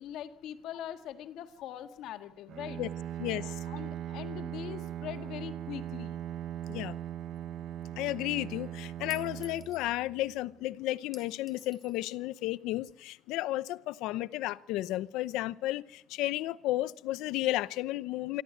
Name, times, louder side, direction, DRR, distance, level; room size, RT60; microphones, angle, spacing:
voice 1, 0.0-2.8 3.4-6.2, left 10 dB, 70° left, 1.7 m, -42 dB
Bowed string instrument, 2.5-10.5, right 11 dB, 55° right, 0.9 m, -40 dB
voice 2, 3.2-3.5 6.7-7.0 8.0-18.4, left 16 dB, 90° left, 0.7 m, -33 dB
Chink clink, 7.4-7.5 9.1-9.9 11.1-12.0, left 3 dB, 15° left, 2.4 m, -52 dB
26.5 x 12.5 x 9.2 m
cardioid pair, 135°, 0 cm